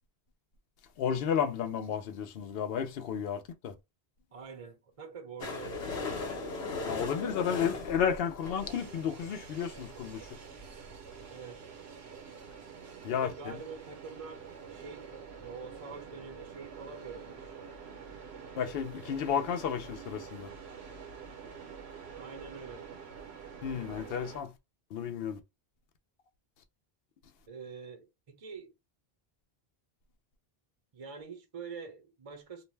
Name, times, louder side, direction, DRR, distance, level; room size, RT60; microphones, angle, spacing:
voice 1, 1.0-3.7 6.8-10.2 13.0-13.3 18.6-20.5 23.6-24.5 24.9-25.4, left 8 dB, 70° left, 0.8 m, -32 dB
voice 2, 4.3-6.0 11.3-11.6 13.1-17.6 22.2-22.9 27.5-28.7 30.9-32.6, right 5 dB, 40° right, 0.6 m, -46 dB
sound 1, 5.4-9.3 9.9-10.0 10.2-10.3 10.5-10.6 10.9-11.0, left 3 dB, 90° left, 1.1 m, -38 dB
sound 2, 8.4-24.4, right 6 dB, 85° right, 1.0 m, -47 dB
2.5 x 2.1 x 3.1 m
omnidirectional pair, 1.1 m